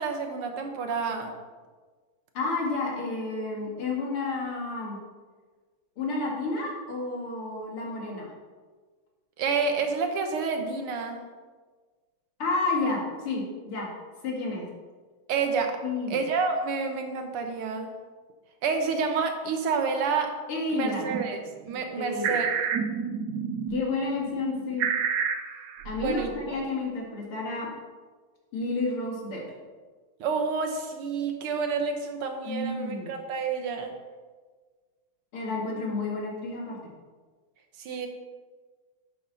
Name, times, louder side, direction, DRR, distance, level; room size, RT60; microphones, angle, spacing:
voice 1, 0.0-1.3 9.4-11.2 15.3-15.8 16.1-17.9 18.6-20.3 20.7-22.5 26.0-26.6 30.2-33.9 37.8-38.1, right 5 dB, 85° right, 5 dB, 2.1 m, -29 dB
voice 2, 2.3-5.0 6.0-8.3 12.4-13.9 14.2-14.7 15.8-16.2 20.5-21.0 22.0-22.4 23.7-24.9 25.8-27.7 28.5-29.4 32.4-33.1 35.3-36.8, left 3 dB, 80° left, -2 dB, 3.0 m, -30 dB
sound 1, 21.1-21.3 21.7-23.8 24.2-26.3, right 6 dB, 65° right, 1.0 m, -29 dB
11.0 x 7.9 x 4.2 m, 1.4 s
omnidirectional pair, 2.4 m